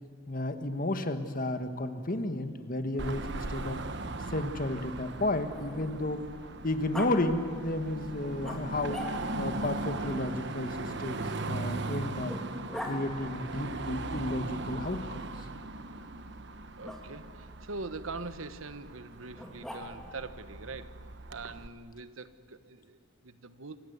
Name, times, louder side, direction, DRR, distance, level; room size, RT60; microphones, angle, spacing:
voice 1, 0.3-3.8 4.3-6.2 6.6-9.0 9.4-12.4 12.8-15.2, left 1 dB, 45° left, 8 dB, 1.6 m, -32 dB
Growling, 2.8-6.2 6.9-7.1 8.4-9.5 10.9-13.0 14.8-15.5 16.8-17.0 19.3-20.2, left 1 dB, ahead, 3.2 m, -44 dB
Car passing by / Traffic noise roadway noise / Engine, 3.0-21.7, right 2 dB, 60° right, 1.2 m, -39 dB
voice 2, 16.8-20.9 21.3-23.8, right 3 dB, 80° right, 12 dB, 1.2 m, -43 dB
28.0 x 26.0 x 8.2 m, 2.1 s
head